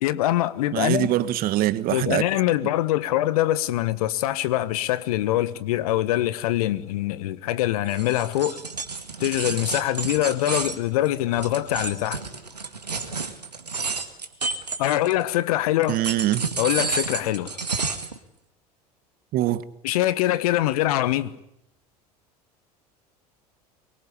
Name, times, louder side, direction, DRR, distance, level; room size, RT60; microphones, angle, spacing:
voice 1, 0.0-1.1 1.9-8.6 9.2-12.2 14.8-16.0 16.6-17.6 19.8-21.3, left 14 dB, 65° left, 1.3 m, -24 dB
voice 2, 0.7-2.2 15.9-16.4 19.3-19.6, right 13 dB, 45° right, 1.6 m, -23 dB
sound 1, 7.9-15.3 15.8-18.2, right 4 dB, 90° right, 2.0 m, -30 dB
24.0 x 21.5 x 10.0 m
figure-of-eight pair, 75°, 20 cm